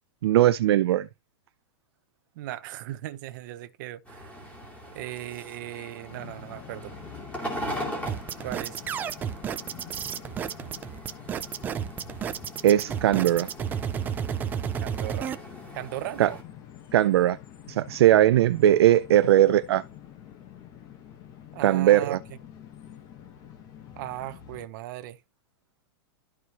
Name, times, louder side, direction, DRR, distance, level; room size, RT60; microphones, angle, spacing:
voice 1, 0.2-1.1 12.6-13.5 16.2-16.3 16.9-17.4 17.7-19.8 21.6-22.2, right 13 dB, 70° right, 0.5 m, -19 dB
voice 2, 2.3-4.4 4.9-6.9 8.4-8.8 13.1-13.3 14.8-15.3 15.7-16.4 21.5-22.2 24.0-25.2, right 14 dB, 45° right, 0.9 m, -37 dB
sound 1, 4.0-16.4, equal, 10° left, 2.6 m, -41 dB
sound 2, 6.1-24.7, left 10 dB, 25° left, 1.2 m, -47 dB
sound 3, 8.1-15.3, right 8 dB, 15° right, 0.5 m, -31 dB
12.5 x 4.8 x 3.0 m
supercardioid pair, 165°, 14 cm